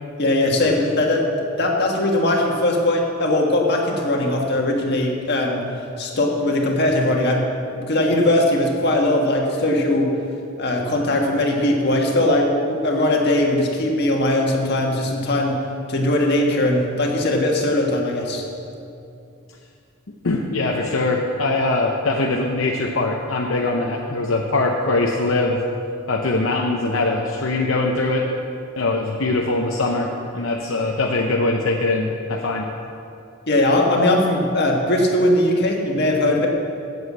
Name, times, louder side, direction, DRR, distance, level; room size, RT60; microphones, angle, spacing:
voice 1, 0.2-1.3 1.5-5.6 6.0-7.4 7.7-10.1 10.6-15.6 15.9-18.4 33.5-36.5, left 1 dB, 55° left, 0 dB, 1.6 m, -20 dB
voice 2, 20.2-25.6 26.1-28.2 28.8-30.1 30.3-32.7, left 2 dB, 75° left, 0 dB, 0.8 m, -22 dB
8.0 x 7.9 x 8.1 m, 2.6 s
head